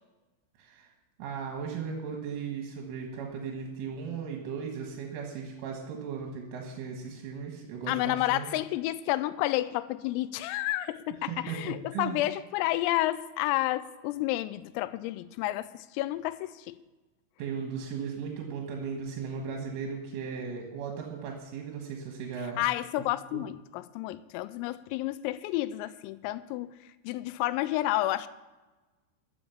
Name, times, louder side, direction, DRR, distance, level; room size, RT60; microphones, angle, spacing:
voice 1, 1.2-8.5 11.3-12.2 17.4-22.6 23.3-23.4, right 6 dB, 75° right, 3.8 m, -37 dB
voice 2, 7.9-16.8 22.6-26.7 27.0-28.3, left 16 dB, 90° left, 3.3 m, -30 dB
13.5 x 7.6 x 7.1 m
omnidirectional pair, 5.9 m